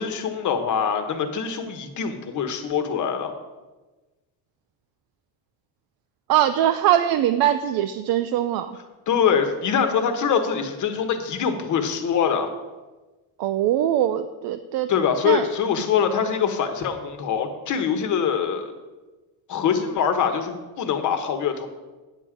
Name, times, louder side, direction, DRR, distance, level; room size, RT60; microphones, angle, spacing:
voice 1, 0.0-3.3 9.1-12.5 14.9-18.7 19.5-21.7, left 7 dB, 50° left, 6 dB, 1.2 m, -24 dB
voice 2, 6.3-8.8 13.4-14.9 15.2-15.5, right 11 dB, 65° right, 9 dB, 0.6 m, -22 dB
9.4 x 7.6 x 5.0 m, 1.2 s
cardioid pair, 150°, 39 cm